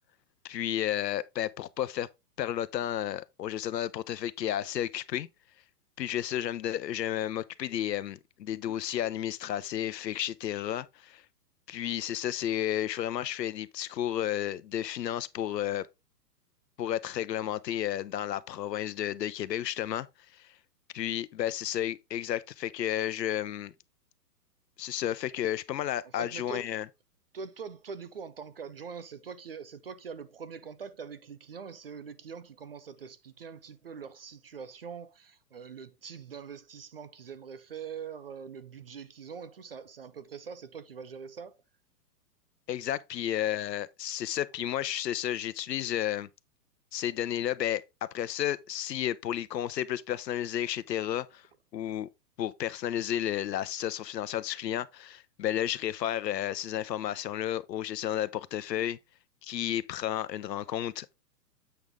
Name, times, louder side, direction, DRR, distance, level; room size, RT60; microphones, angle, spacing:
voice 1, 0.4-2.1 2.4-5.3 6.0-11.2 11.7-15.9 16.8-20.1 20.3-20.5 20.9-23.7 24.8-26.9 42.7-46.3 46.9-51.5 51.7-52.1 52.4-59.0 59.4-61.1, left 11 dB, 80° left, 0.9 m, -32 dB
voice 2, 26.1-26.7 27.3-41.5, right 6 dB, 40° right, 0.5 m, -43 dB
8.0 x 5.3 x 3.5 m
hypercardioid pair, 165°, 49 cm